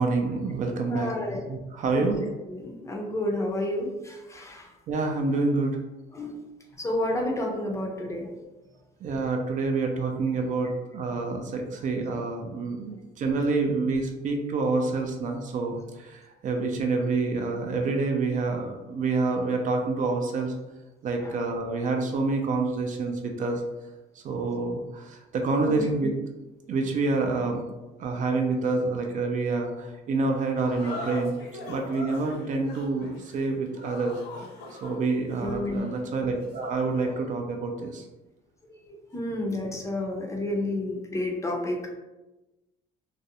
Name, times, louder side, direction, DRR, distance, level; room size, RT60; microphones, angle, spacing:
voice 1, 0.0-1.1 1.5-2.2 4.9-5.8 9.0-20.5 21.0-23.6 24.2-26.1 26.7-27.6 28.0-31.3 31.7-34.2 34.8-38.0, right 3 dB, 50° right, 3 dB, 0.4 m, -27 dB
voice 2, 0.9-1.4 1.9-2.2 2.5-4.7 6.1-6.5 6.8-8.3 21.2-21.4 25.6-25.8 35.4-35.8 38.7-42.0, left 1 dB, 15° left, 0 dB, 0.4 m, -30 dB
sound 1, 30.5-37.3, left 1 dB, 75° left, 0.6 m, -42 dB
2.4 x 2.0 x 2.7 m, 1.1 s
cardioid pair, 110°, 17 cm